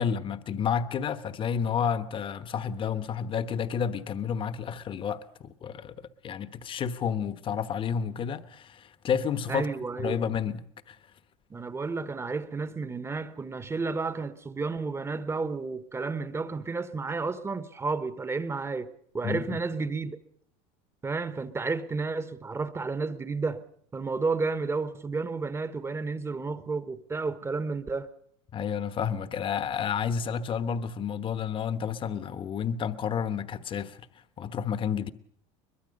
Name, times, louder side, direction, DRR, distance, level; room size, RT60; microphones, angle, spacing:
voice 1, 0.0-9.7 10.0-11.0 19.2-19.6 28.5-34.1 34.4-35.1, left 7 dB, 35° left, 1.2 m, -30 dB
voice 2, 9.5-10.2 11.5-20.2 21.0-23.6 23.9-28.1, right 4 dB, 15° right, 1.1 m, -31 dB
23.0 x 21.0 x 5.3 m
supercardioid pair, 120°, 16 cm